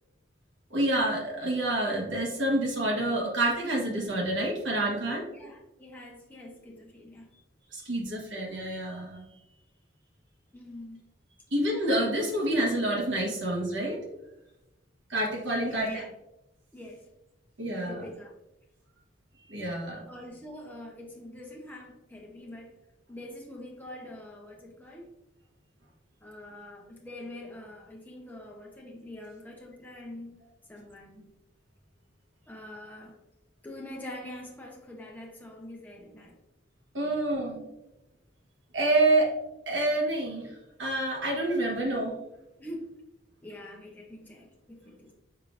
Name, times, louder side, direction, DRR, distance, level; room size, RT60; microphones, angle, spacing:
voice 1, 0.7-5.2 7.7-9.3 11.5-14.0 15.1-16.0 17.6-18.0 19.5-20.0 36.9-37.6 38.7-39.3 39.7-40.5 40.8-42.2, right 1 dB, 70° right, -2 dB, 1.4 m, -28 dB
voice 2, 5.3-7.3 10.5-11.1 15.6-16.1 16.7-17.1 17.8-18.3 20.1-22.8 23.1-25.1 26.2-30.4 30.7-31.2 32.5-33.2 33.6-36.4 42.6-42.9 43.4-45.1, left 1 dB, 10° left, -2 dB, 0.9 m, -44 dB
5.6 x 3.7 x 2.6 m, 0.95 s
head